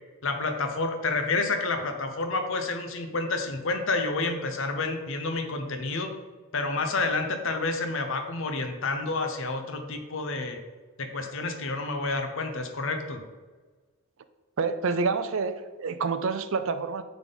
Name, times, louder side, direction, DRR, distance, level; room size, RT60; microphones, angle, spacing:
voice 1, 0.2-6.1 6.5-10.6 11.0-13.2, left 3 dB, 60° left, 6 dB, 0.8 m, -29 dB
voice 2, 14.6-17.0, right 4 dB, 65° right, 11 dB, 0.4 m, -28 dB
9.1 x 3.6 x 4.0 m, 1.4 s
head